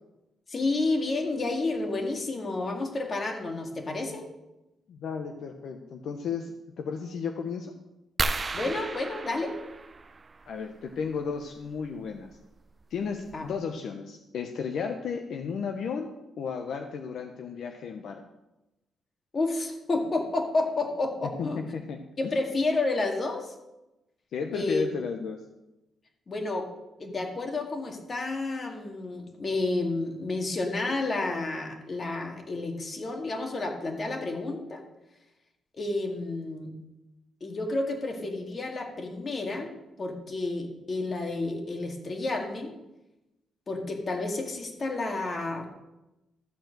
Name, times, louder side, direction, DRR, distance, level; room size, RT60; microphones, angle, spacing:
voice 1, 0.5-4.3 8.5-9.6 13.3-13.5 19.3-21.6 22.2-23.5 24.5-24.8 26.3-26.7 27.0-34.8 35.7-36.7 37.4-39.7 40.0-42.7 43.7-45.7, left 2 dB, 35° left, 2 dB, 2.2 m, -30 dB
voice 2, 4.9-7.7 10.5-12.3 12.9-16.1 16.4-18.2 21.4-22.0 24.3-25.4, left 6 dB, 70° left, 5 dB, 0.9 m, -34 dB
sound 1, 8.2-10.6 12.2-12.3 12.9-13.0 13.3-13.5, right 3 dB, 30° right, 0.6 m, -33 dB
13.5 x 4.7 x 7.8 m, 0.96 s
cardioid pair, 105°, 0 cm